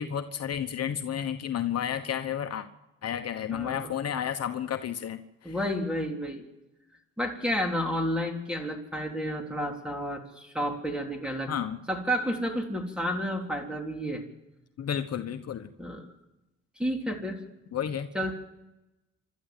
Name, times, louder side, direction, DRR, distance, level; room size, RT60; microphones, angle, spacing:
voice 1, 0.0-2.7 3.0-5.5 11.5-11.8 14.8-15.7 17.7-18.1, left 9 dB, 55° left, 7 dB, 1.2 m, -31 dB
voice 2, 3.5-3.9 5.4-6.5 7.2-11.5 11.9-14.2 15.8-16.0 16.8-17.4 18.1-18.3, equal, 5° right, 3 dB, 3.6 m, -31 dB
28.0 x 13.0 x 7.5 m, 1.0 s
cardioid pair, 90°, 30 cm